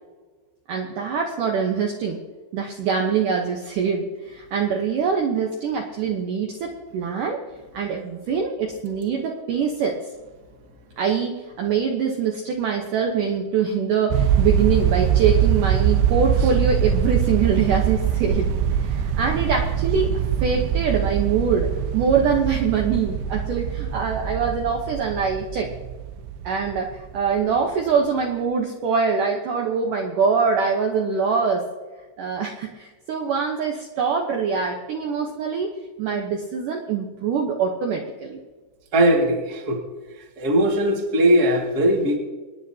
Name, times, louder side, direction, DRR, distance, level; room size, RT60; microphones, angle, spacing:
voice 1, 0.7-2.2 2.5-7.4 7.7-10.0 11.0-18.5 18.8-20.1 20.4-25.7 26.4-31.6 32.2-35.7 36.0-38.4, right 6 dB, 70° right, 0 dB, 2.2 m, -24 dB
sound 1, 14.1-27.4, right 9 dB, 85° right, 2.7 m, -23 dB
voice 2, 38.9-39.8 40.2-42.2, right 1 dB, 35° right, 1 dB, 1.7 m, -19 dB
26.0 x 10.0 x 2.8 m, 1.3 s
omnidirectional pair, 4.8 m